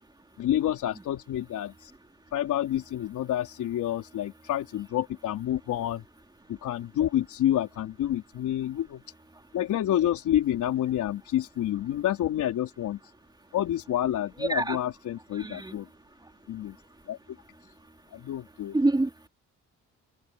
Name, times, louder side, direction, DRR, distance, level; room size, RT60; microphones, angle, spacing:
voice 1, 0.4-1.9 2.3-6.0 6.5-9.0 9.5-13.0 13.5-15.9 16.5-16.8 17.1-17.2 18.1-18.8, left 12 dB, 80° left, 4.0 m, -28 dB
voice 2, 14.4-14.8 15.4-15.8 18.7-19.3, right 2 dB, 15° right, 3.5 m, -26 dB
cardioid pair, 90°, 30 cm